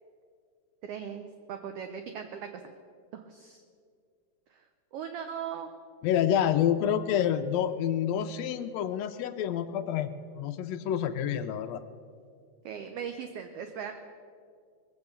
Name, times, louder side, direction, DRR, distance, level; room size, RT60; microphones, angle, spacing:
voice 1, 0.8-2.5 3.1-3.6 4.5-4.6 4.9-5.7 6.4-6.6 12.6-13.9, right 8 dB, 75° right, 7 dB, 1.4 m, -39 dB
voice 2, 6.0-11.8, left 9 dB, 80° left, 8 dB, 1.5 m, -28 dB
20.5 x 8.1 x 6.8 m, 2.2 s
omnidirectional pair, 3.5 m